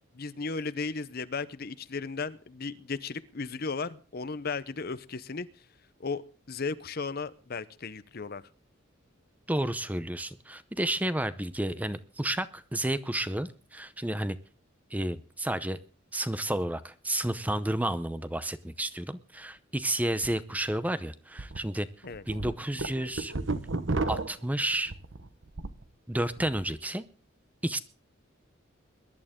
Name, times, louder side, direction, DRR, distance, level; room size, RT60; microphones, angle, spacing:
voice 1, 0.1-5.5 6.0-6.2 6.5-8.4 22.0-22.2, left 4 dB, 50° left, 15 dB, 0.7 m, -35 dB
voice 2, 9.5-14.4 14.9-15.8 16.1-21.9 22.3-23.3 24.1-24.9 26.1-27.0 27.6-27.8, right 1 dB, 10° right, 13 dB, 0.7 m, -31 dB
sound 1, 20.2-20.3 20.7-20.8 21.4-21.6 22.0-25.8 26.2-26.6, right 3 dB, 65° right, 1.1 m, -33 dB
21.5 x 11.5 x 3.7 m, 0.39 s
head